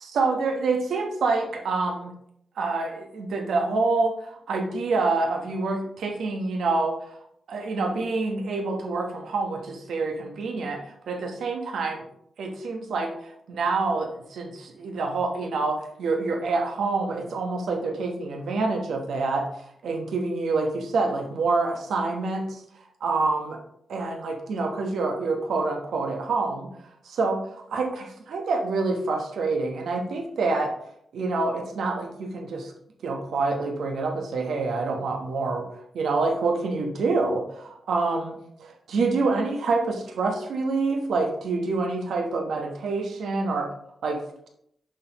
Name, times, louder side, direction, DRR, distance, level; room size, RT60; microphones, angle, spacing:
voice 1, 0.1-2.1 2.6-7.1 7.5-12.0 12.4-22.6 23.0-23.6 23.9-26.7 27.0-30.7 31.1-32.7 33.0-38.3 38.9-43.7 44.0-44.2, right 3 dB, 80° right, 3 dB, 1.1 m, -27 dB
8.0 x 5.9 x 3.0 m, 0.73 s
supercardioid pair, 50°, 0 cm